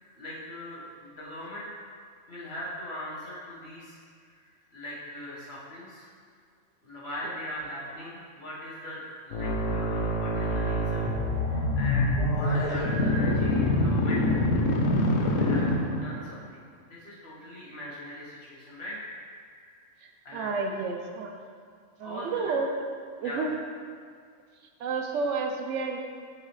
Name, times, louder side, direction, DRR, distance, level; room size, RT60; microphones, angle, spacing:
voice 1, 0.2-1.7 2.3-6.1 6.8-11.1 11.4-14.5 15.2-15.7 16.0-19.0 19.3-19.9 20.2-20.5 22.0-22.5 23.2-23.5, left 1 dB, 55° left, -8 dB, 1.7 m, -40 dB
sound 1, 9.3-16.3, left 1 dB, 80° left, 1.0 m, -25 dB
voice 2, 20.3-21.3 22.0-22.7 23.2-23.5 24.8-26.0, right 4 dB, 75° right, 3 dB, 0.9 m, -30 dB
6.4 x 4.8 x 3.2 m, 2.1 s
omnidirectional pair, 1.3 m